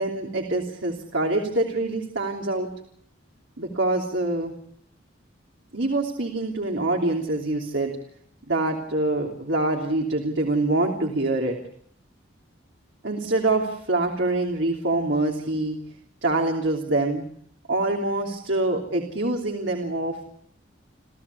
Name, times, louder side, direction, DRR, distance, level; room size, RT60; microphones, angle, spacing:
voice 1, 0.0-2.7 3.6-4.5 5.7-7.9 8.5-11.6 13.0-15.8 16.2-17.2 17.7-20.2, right 2 dB, 65° right, 1 dB, 3.1 m, -25 dB
29.5 x 15.0 x 8.4 m, 0.67 s
head